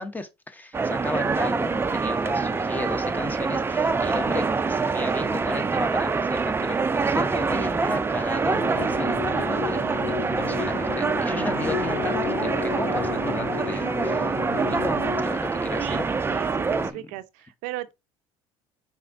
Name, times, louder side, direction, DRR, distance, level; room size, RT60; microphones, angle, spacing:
voice 1, 0.0-16.1 16.3-16.5 16.8-17.1, left 1 dB, 10° left, 0.8 m, -34 dB
sound 1, 0.7-16.9, right 4 dB, 15° right, 0.4 m, -25 dB
sound 2, 8.5-15.2, left 8 dB, 60° left, 0.5 m, -32 dB
voice 2, 15.8-17.9, right 15 dB, 70° right, 0.4 m, -37 dB
4.9 x 3.5 x 2.5 m
supercardioid pair, 80°, 14 cm